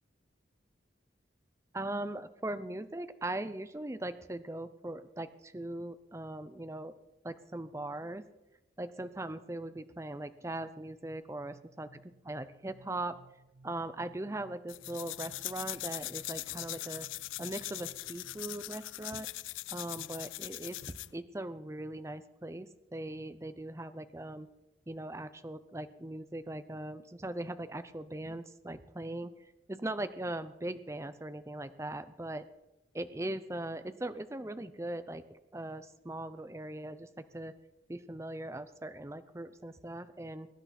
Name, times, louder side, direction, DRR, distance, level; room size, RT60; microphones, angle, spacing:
voice 1, 1.7-6.9 7.2-8.2 8.8-11.9 12.2-13.1 13.6-17.1 17.4-19.3 19.7-24.5 24.9-32.4 32.9-37.1 37.3-37.5 37.9-40.5, right 1 dB, 15° right, 12 dB, 0.6 m, -40 dB
sound 1, 11.1-18.7, right 3 dB, 50° right, 1.0 m, -60 dB
sound 2, 14.7-21.2, left 17 dB, 85° left, 0.4 m, -41 dB
21.5 x 10.5 x 4.3 m, 0.97 s
head